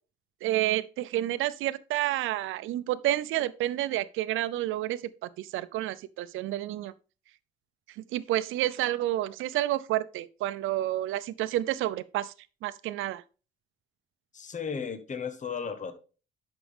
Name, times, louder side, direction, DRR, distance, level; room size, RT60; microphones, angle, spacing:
voice 1, 0.4-6.9 8.1-12.3 12.6-13.2, right 14 dB, 90° right, 0.6 m, -30 dB
voice 2, 14.3-15.9, left 6 dB, 40° left, 1.4 m, -35 dB
11.0 x 6.1 x 3.5 m
cardioid pair, 90°, 20 cm